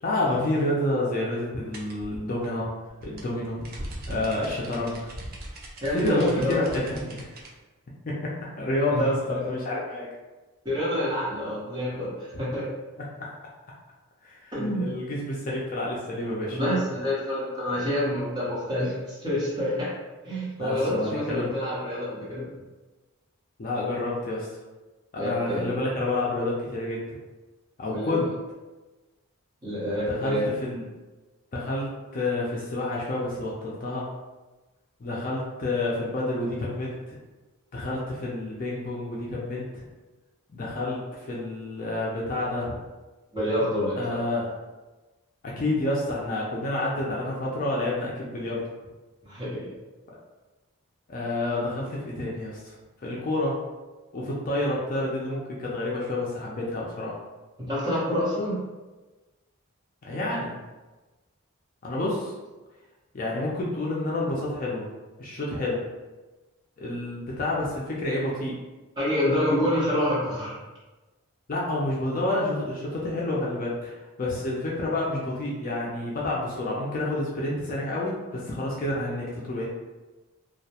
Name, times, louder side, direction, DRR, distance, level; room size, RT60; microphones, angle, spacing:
voice 1, 0.0-2.7 3.0-3.6 4.1-5.0 5.9-7.3 8.1-10.1 13.2-13.3 14.2-14.5 14.8-16.6 20.6-21.5 23.6-24.5 25.1-27.2 27.8-28.3 29.9-30.8 31.5-34.1 35.0-37.2 37.7-39.9 40.5-42.8 44.0-44.5 45.4-48.6 51.1-52.7 53.0-53.6 54.1-57.1 60.0-60.6 61.8-62.3 63.1-64.9 65.2-65.8 66.8-68.6 71.5-79.7, left 1 dB, 35° left, -4 dB, 0.3 m, -29 dB
sound 1, 1.7-7.5, right 1 dB, 40° right, 0.3 m, -40 dB
voice 2, 5.8-6.6 8.9-9.4 10.6-12.6 14.5-14.9 16.5-19.9 20.2-22.5 25.1-25.7 27.8-28.2 29.6-30.5 43.3-44.2 49.2-49.6 57.6-58.6 69.0-70.6, left 1 dB, 20° right, -9 dB, 0.8 m, -27 dB
2.2 x 2.1 x 2.7 m, 1.2 s
head